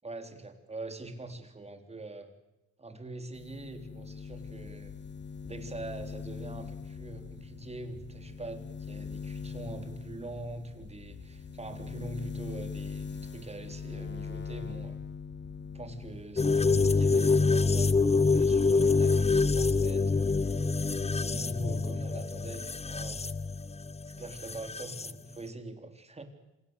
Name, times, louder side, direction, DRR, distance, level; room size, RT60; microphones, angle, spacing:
voice 1, 0.0-2.3 2.8-4.9 5.4-15.0 15.7-23.2 24.1-26.2, right 2 dB, 20° right, 6 dB, 3.8 m, -43 dB
sound 1, 3.3-16.3 16.6-17.6, left 5 dB, 35° left, 1.8 m, -42 dB
sound 2, 4.1-19.8, left 6 dB, 90° left, 3.9 m, -52 dB
sound 3, 16.4-25.1, left 4 dB, 20° left, 0.9 m, -26 dB
26.5 x 17.0 x 8.1 m, 1.0 s
cardioid pair, 90°, 30 cm